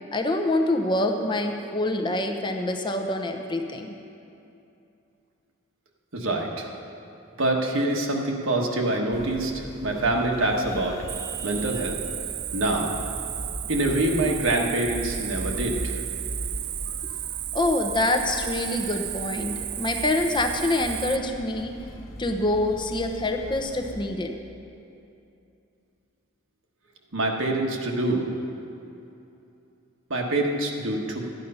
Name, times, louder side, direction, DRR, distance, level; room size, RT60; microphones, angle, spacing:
voice 1, 0.1-3.9 17.0-17.2 17.5-21.7 22.2-24.3, left 2 dB, 20° left, 4 dB, 0.8 m, -26 dB
voice 2, 6.1-6.7 7.4-11.0 11.4-12.0 12.5-12.9 13.7-16.0 27.1-28.3 30.1-31.2, right 2 dB, 75° right, 0 dB, 1.4 m, -25 dB
sound 1, 9.1-24.0, equal, 50° left, 1.2 m, -39 dB
Cricket, 11.1-21.2, right 13 dB, 55° right, 0.4 m, -34 dB
13.5 x 9.3 x 5.6 m, 2.8 s
head